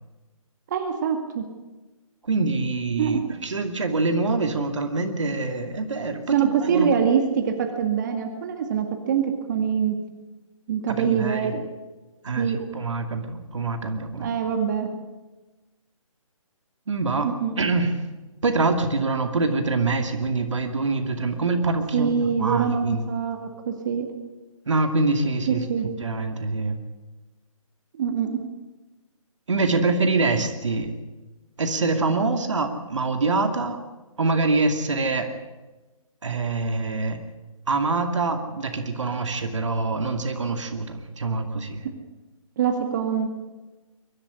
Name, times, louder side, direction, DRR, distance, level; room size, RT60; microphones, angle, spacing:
voice 1, 0.7-1.4 3.0-3.4 6.3-10.0 10.7-11.6 12.4-12.6 14.2-14.9 17.2-17.5 21.9-24.1 25.5-25.9 28.0-28.4 42.6-43.3, right 7 dB, 35° right, 5 dB, 2.1 m, -24 dB
voice 2, 2.3-6.9 11.0-11.5 12.2-14.3 16.9-17.9 18.4-23.1 24.7-26.8 29.5-30.9 31.6-33.8 34.2-35.3 36.2-37.2 37.7-41.9, right 3 dB, 60° right, 7 dB, 2.5 m, -25 dB
23.5 x 13.0 x 10.0 m, 1.2 s
figure-of-eight pair, 140°, 18 cm